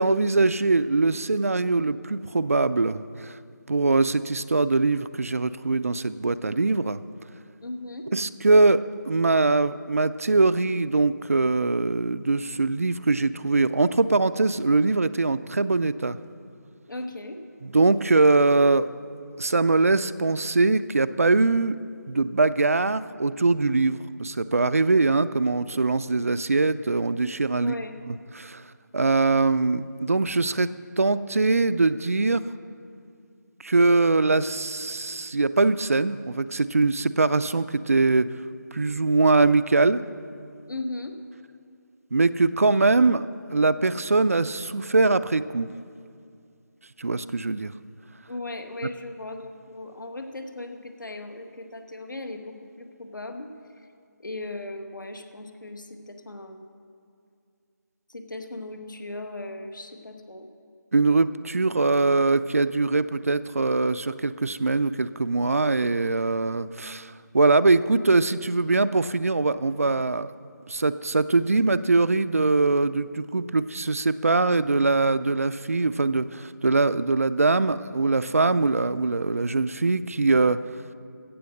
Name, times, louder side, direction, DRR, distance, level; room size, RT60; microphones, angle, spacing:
voice 1, 0.0-3.4 3.7-7.0 8.1-16.2 17.6-18.9 19.4-21.8 22.1-27.7 28.1-28.6 28.9-32.4 33.6-38.3 38.7-40.0 42.1-45.7 47.0-47.7 60.9-70.3 70.7-80.6, right 3 dB, 45° right, 14 dB, 0.4 m, -22 dB
voice 2, 7.6-8.1 16.9-17.4 27.6-27.9 40.7-41.2 48.3-53.9 54.2-56.7 58.1-60.5, left 2 dB, 80° left, 6 dB, 1.6 m, -37 dB
15.5 x 7.5 x 6.4 m, 2.3 s
figure-of-eight pair, 175°, 10 cm